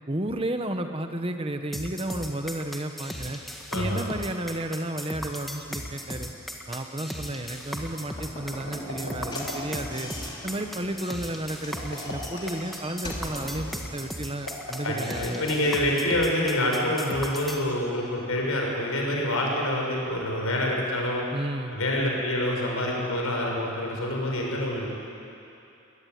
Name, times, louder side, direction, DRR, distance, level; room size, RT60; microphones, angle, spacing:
voice 1, 0.1-3.4 3.7-6.3 6.7-10.1 10.4-15.5 21.3-21.8, right 1 dB, 25° right, 6 dB, 1.3 m, -32 dB
sound 1, 1.7-17.6, equal, ahead, 1.7 m, -37 dB
voice 2, 3.7-4.0 14.8-21.2 21.7-24.9, left 1 dB, 80° left, -1 dB, 6.4 m, -26 dB
Slam / Knock, 8.1-13.9, left 1 dB, 20° left, 3.2 m, -40 dB
sound 2, 8.7-10.1 11.6-12.8 14.4-15.9, left 2 dB, 65° left, 5.4 m, -37 dB
22.5 x 21.0 x 9.6 m, 2.8 s
head